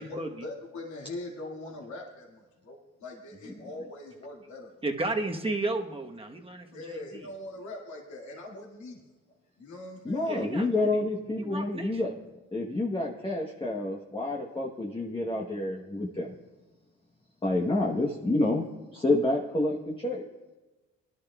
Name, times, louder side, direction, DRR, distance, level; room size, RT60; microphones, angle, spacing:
voice 1, 0.0-4.7 6.7-9.0 9.6-10.4, left 2 dB, 70° left, -1 dB, 2.2 m, -42 dB
voice 2, 4.8-7.3 10.2-11.0 11.4-12.0, right 2 dB, 20° right, 3 dB, 1.2 m, -33 dB
voice 3, 10.0-12.1 12.5-16.3 17.4-18.6 18.9-20.2, left 2 dB, 15° left, -2 dB, 1.1 m, -28 dB
20.5 x 11.5 x 2.4 m, 1.2 s
cardioid pair, 90°, 30 cm